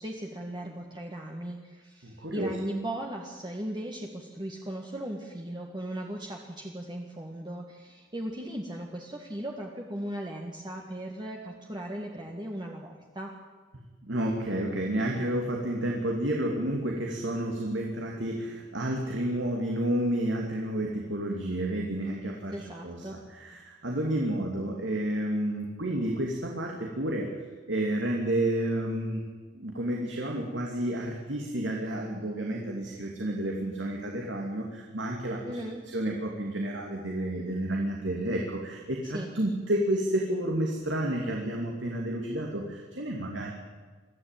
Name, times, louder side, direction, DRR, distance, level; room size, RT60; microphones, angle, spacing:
voice 1, 0.0-13.3 22.5-23.2 35.4-35.8 39.0-39.3, right 1 dB, 25° right, 0 dB, 1.8 m, -37 dB
voice 2, 2.0-2.5 14.0-22.5 22.8-27.3 27.7-29.2 29.5-35.4 35.9-43.5, right 1 dB, 75° right, 0 dB, 2.8 m, -30 dB
23.0 x 14.5 x 9.2 m, 1.4 s
head